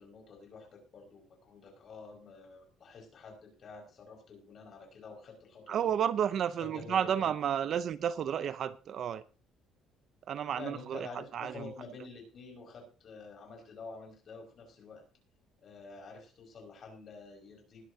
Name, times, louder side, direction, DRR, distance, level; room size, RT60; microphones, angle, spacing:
voice 1, 0.0-5.9 6.6-7.3 10.5-15.0 15.6-17.9, left 4 dB, 35° left, 5.4 m, -49 dB
voice 2, 5.7-9.2 10.3-11.6, right 9 dB, 40° right, 0.6 m, -32 dB
20.0 x 11.5 x 2.8 m
cardioid pair, 170°, 0 cm